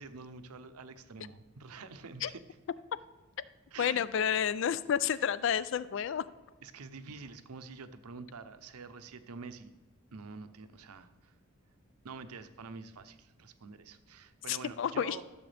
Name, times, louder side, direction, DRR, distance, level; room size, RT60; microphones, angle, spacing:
voice 1, 0.0-2.4 3.7-4.0 6.6-9.7 10.1-11.3 12.0-15.2, right 4 dB, 85° right, 11 dB, 0.7 m, -47 dB
voice 2, 3.8-6.2 14.5-15.2, left 8 dB, 55° left, 17 dB, 0.3 m, -30 dB
14.0 x 7.1 x 3.3 m, 1.2 s
head